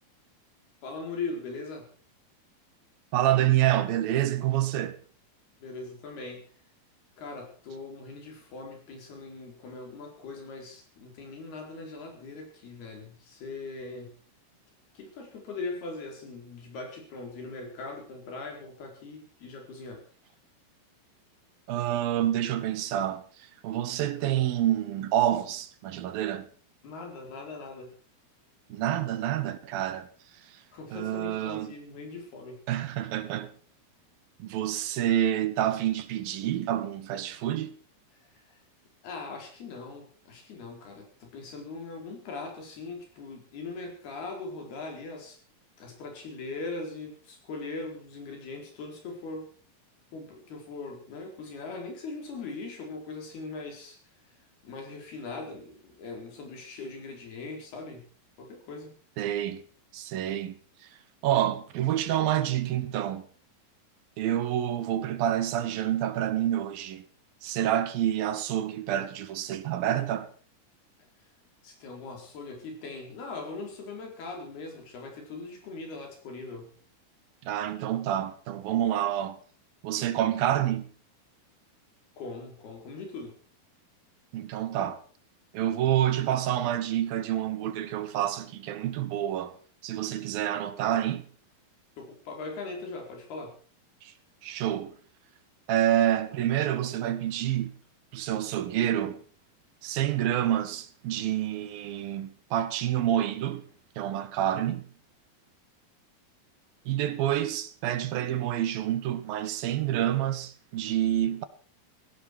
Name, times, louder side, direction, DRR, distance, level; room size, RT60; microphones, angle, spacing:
voice 1, 0.8-1.9 5.6-6.4 7.2-14.1 14.9-20.0 26.8-27.9 30.7-32.6 38.5-38.6 39.0-45.4 45.8-49.5 50.1-54.0 54.6-58.1 58.4-59.0 71.6-76.7 82.2-83.4 92.0-93.5, left 3 dB, 80° left, 6.5 m, -40 dB
voice 2, 3.1-5.0 21.7-26.5 28.7-30.1 30.5-30.6 30.9-31.7 32.7-33.5 34.4-37.8 59.2-59.6 59.9-60.6 61.2-63.2 64.2-67.0 67.4-70.3 77.5-79.4 79.8-80.9 84.3-85.0 85.5-89.6 89.8-91.3 94.0-94.1 94.4-95.0 95.7-97.7 98.1-99.2 99.8-103.6 104.0-104.9 106.9-111.4, right 12 dB, 75° right, 2.8 m, -28 dB
17.0 x 16.5 x 4.8 m
omnidirectional pair, 4.4 m